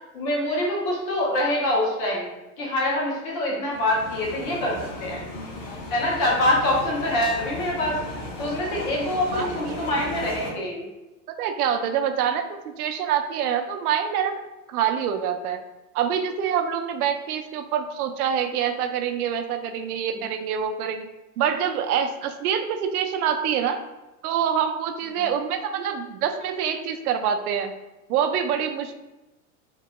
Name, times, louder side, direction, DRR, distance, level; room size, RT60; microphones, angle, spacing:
voice 1, 0.1-2.3 2.6-5.2 5.9-8.0 8.4-10.8 19.7-19.9 25.1-25.2, left 1 dB, 25° left, -3 dB, 0.3 m, -25 dB
sound 1, 3.7-10.5, left 1 dB, 55° left, 1.0 m, -36 dB
voice 2, 9.3-10.0 11.4-14.3 14.7-15.6 15.9-21.0 21.4-23.8 24.2-27.7 28.1-29.0, right 8 dB, 90° right, 7 dB, 0.5 m, -26 dB
2.9 x 2.2 x 2.9 m, 1.0 s
supercardioid pair, 155°, 43 cm